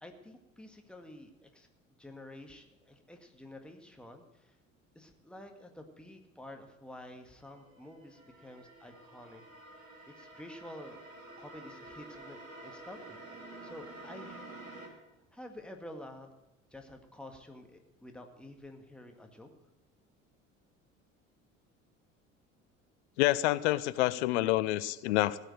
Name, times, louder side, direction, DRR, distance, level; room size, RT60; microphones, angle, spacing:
voice 1, 0.0-1.7 2.0-4.6 5.0-9.4 10.2-11.0 11.4-14.4 15.3-16.3 16.7-19.5, left 1 dB, ahead, 4 dB, 1.8 m, -50 dB
sound 1, 7.2-14.9, right 2 dB, 80° right, 2.6 m, -50 dB
voice 2, 23.2-25.4, left 17 dB, 60° left, 16 dB, 0.7 m, -28 dB
16.5 x 6.7 x 9.0 m, 0.96 s
figure-of-eight pair, 65°, 39 cm